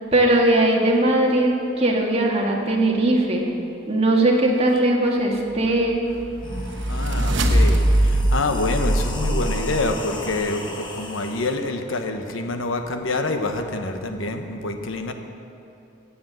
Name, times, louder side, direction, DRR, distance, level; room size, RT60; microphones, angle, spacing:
voice 1, 0.1-3.4 3.9-6.0, right 1 dB, 30° right, -1 dB, 1.9 m, -19 dB
sound 1, 5.8-5.9 6.3-11.6, left 1 dB, 25° left, 1.2 m, -35 dB
sound 2, 5.9-10.1, right 1 dB, 65° right, 1.1 m, -21 dB
voice 2, 6.9-15.1, left 2 dB, 80° left, 6 dB, 1.1 m, -27 dB
14.5 x 8.6 x 7.6 m, 2.8 s
head